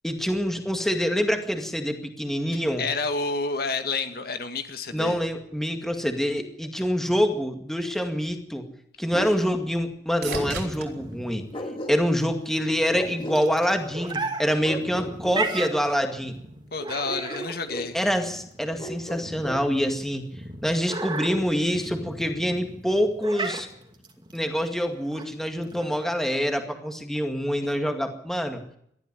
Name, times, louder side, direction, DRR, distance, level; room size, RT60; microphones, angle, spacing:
voice 1, 0.0-2.8 4.9-8.6 9.0-11.4 11.9-16.4 17.9-20.3 20.6-23.7 24.3-28.6, equal, ahead, 5 dB, 2.1 m, -26 dB
voice 2, 2.8-5.2 16.7-18.0, left 3 dB, 60° left, 7 dB, 2.0 m, -29 dB
sound 1, 8.5-12.7 13.2-13.8 21.6-21.7, right 4 dB, 65° right, 4.5 m, -41 dB
Bark, 9.1-9.4 10.3-10.5 11.5-12.3 12.9-13.4 14.6-15.8 17.0-17.9 18.8-19.6, equal, 30° left, 2.3 m, -34 dB
sound 2, 10.3-26.2, right 3 dB, 25° right, 2.5 m, -36 dB
20.0 x 13.0 x 9.9 m, 0.70 s
head